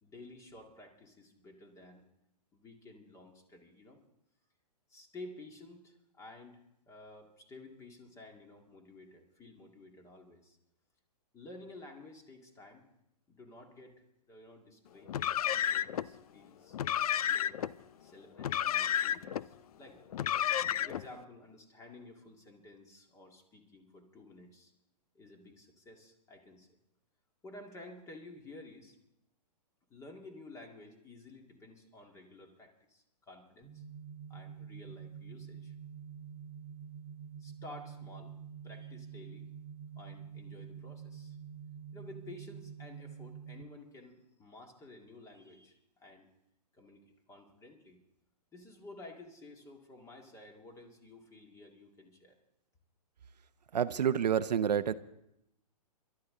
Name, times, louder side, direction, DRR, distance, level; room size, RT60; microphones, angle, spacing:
voice 1, 0.0-2.0 2.5-4.0 4.9-10.6 11.3-12.9 13.3-16.8 17.1-17.6 18.0-20.0 20.5-24.7 25.1-26.8 27.4-29.0 29.9-33.8 34.3-35.7 37.4-38.3 38.6-39.5 40.0-41.4 41.9-46.3 46.7-48.0 48.5-52.4, left 2 dB, 15° left, 3 dB, 2.2 m, -53 dB
Car, 15.1-16.1 16.7-17.7 18.4-19.4 20.1-21.1, left 10 dB, 65° left, 0.5 m, -31 dB
sound 1, 33.6-43.6, right 7 dB, 10° right, 2.1 m, -47 dB
voice 2, 53.7-54.9, right 8 dB, 85° right, 12 dB, 0.7 m, -28 dB
28.0 x 12.5 x 3.8 m, 0.82 s
hypercardioid pair, 140°, 21 cm